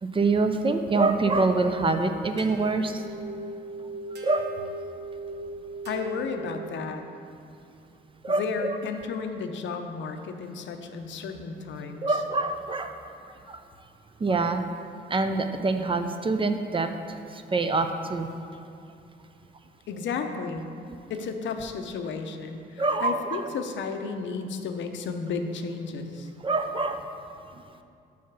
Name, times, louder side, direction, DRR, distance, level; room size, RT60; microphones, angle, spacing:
voice 1, 0.0-3.0 4.2-4.5 8.2-8.8 12.0-12.9 13.5-13.6 14.2-14.7 15.1-16.9 17.3-18.3 22.8-23.5 26.4-27.0, right 3 dB, 25° right, 7 dB, 0.4 m, -25 dB
sound 1, 2.4-7.2, right 2 dB, 60° right, 0.9 m, -39 dB
voice 2, 5.9-7.1 8.3-12.2 19.9-20.7 21.1-26.3, left 5 dB, 70° left, 6 dB, 0.6 m, -33 dB
5.6 x 4.7 x 5.9 m, 2.5 s
cardioid pair, 90°, 20 cm